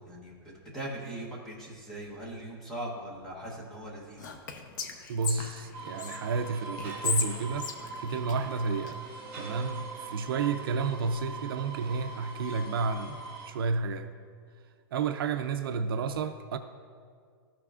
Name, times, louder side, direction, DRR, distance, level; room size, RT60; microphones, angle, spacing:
voice 1, 0.1-4.3, right 1 dB, 5° left, -5 dB, 0.9 m, -40 dB
Whispering, 4.2-6.2 6.8-8.9, left 6 dB, 50° left, 0.7 m, -35 dB
voice 2, 5.1-9.0 9.3-14.1 14.9-16.6, right 4 dB, 60° right, 8 dB, 0.4 m, -31 dB
sound 1, 5.7-13.5, right 3 dB, 15° right, 1.5 m, -42 dB
13.5 x 5.8 x 2.4 m, 2.1 s
supercardioid pair, 180°, 13 cm